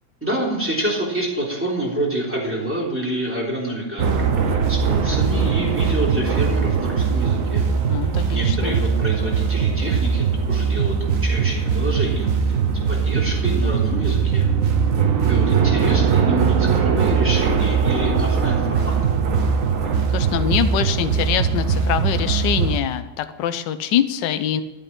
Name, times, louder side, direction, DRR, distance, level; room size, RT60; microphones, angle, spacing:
voice 1, 0.2-7.6 8.0-12.6 12.9-14.5 15.2-19.0, right 1 dB, 5° right, -4 dB, 3.4 m, -27 dB
sound 1, 4.0-22.8, right 6 dB, 50° right, 1.2 m, -20 dB
voice 2, 7.9-8.8 20.1-24.6, left 10 dB, 65° left, 10 dB, 1.3 m, -24 dB
12.0 x 8.2 x 6.0 m, 1.0 s
omnidirectional pair, 2.3 m